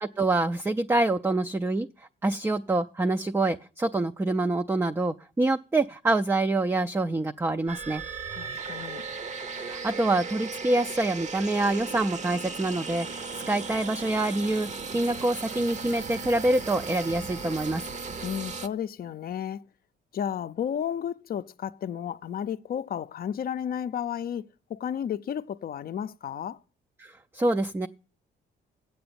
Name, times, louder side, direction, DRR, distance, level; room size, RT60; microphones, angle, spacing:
voice 1, 0.0-8.0 9.5-17.8 27.0-27.9, right 2 dB, 10° right, 0.4 m, -26 dB
sound 1, 7.7-18.7, right 4 dB, 35° right, 0.8 m, -36 dB
voice 2, 8.3-9.0 18.2-19.6 20.1-26.6, left 9 dB, 50° left, 0.5 m, -33 dB
8.6 x 8.0 x 6.9 m
cardioid pair, 90°, 20 cm